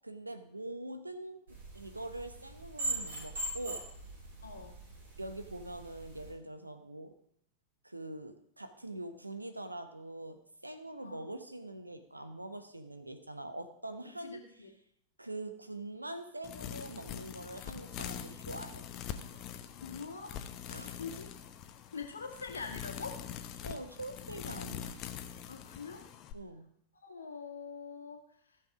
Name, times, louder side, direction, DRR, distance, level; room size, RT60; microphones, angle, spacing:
voice 1, 0.0-1.4 1.7-3.8 5.2-7.1 7.8-14.4 15.2-18.9 20.7-21.0 23.6-25.0 26.3-26.7, right 1 dB, 85° right, 9 dB, 1.0 m, -43 dB
sound 1, 1.5-6.3, right 2 dB, 60° right, 5.6 m, -41 dB
voice 2, 4.4-4.8 11.0-11.2 14.0-14.7 19.8-21.3 21.9-23.2 25.5-26.1 27.0-28.2, left 5 dB, 75° left, 4 dB, 1.9 m, -44 dB
sound 2, 16.4-26.3, left 9 dB, 40° left, 0.9 m, -44 dB
15.0 x 6.7 x 5.0 m, 0.74 s
figure-of-eight pair, 90°, 0 cm